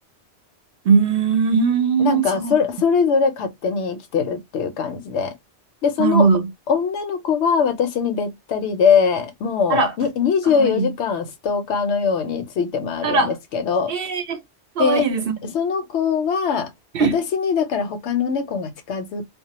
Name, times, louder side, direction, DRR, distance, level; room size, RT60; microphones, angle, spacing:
voice 1, 0.9-2.5 6.0-6.4 9.7-9.9 10.5-10.9 13.0-13.3 13.9-14.4 14.8-15.4 16.9-17.2, right 5 dB, 60° right, 0.7 m, -19 dB
voice 2, 2.0-5.3 5.8-6.3 6.7-13.9 14.8-15.1 15.4-16.7 17.0-19.3, left 6 dB, 75° left, 0.9 m, -22 dB
2.2 x 2.0 x 2.8 m
omnidirectional pair, 1.2 m